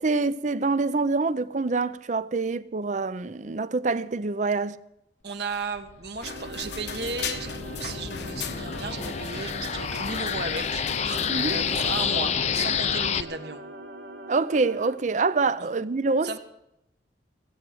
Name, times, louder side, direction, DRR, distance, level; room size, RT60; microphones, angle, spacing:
voice 1, 0.0-4.8 11.3-11.6 14.3-16.4, right 3 dB, 45° right, 0.5 m, -26 dB
voice 2, 5.2-13.7 15.6-15.7 16.2-16.4, right 4 dB, 65° right, 1.5 m, -35 dB
sound 1, 5.9-13.2, left 7 dB, 40° left, 0.5 m, -29 dB
sound 2, 6.2-12.0, left 6 dB, 70° left, 1.0 m, -38 dB
sound 3, 6.2-15.0, right 1 dB, 90° right, 2.1 m, -42 dB
17.5 x 8.3 x 7.8 m
head